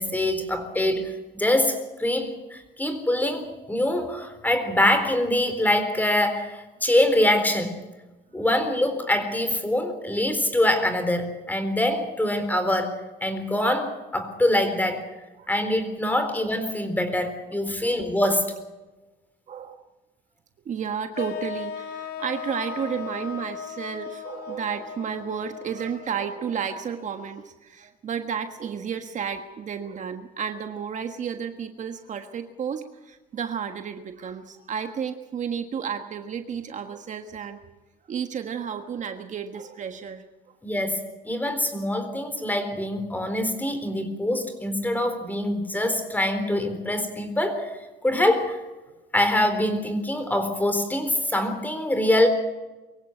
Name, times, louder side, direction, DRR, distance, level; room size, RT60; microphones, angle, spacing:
voice 1, 0.0-7.8 8.3-15.0 15.5-18.5 40.6-47.7 48.0-48.6 49.1-52.3, left 1 dB, 10° left, 9 dB, 4.0 m, -24 dB
voice 2, 19.5-19.8 20.6-37.6 38.1-40.2, right 7 dB, 45° right, 6 dB, 1.6 m, -32 dB
sound 1, 21.2-27.2, left 7 dB, 70° left, 2.1 m, -37 dB
24.0 x 16.0 x 7.9 m, 1.1 s
cardioid pair, 110°, 17 cm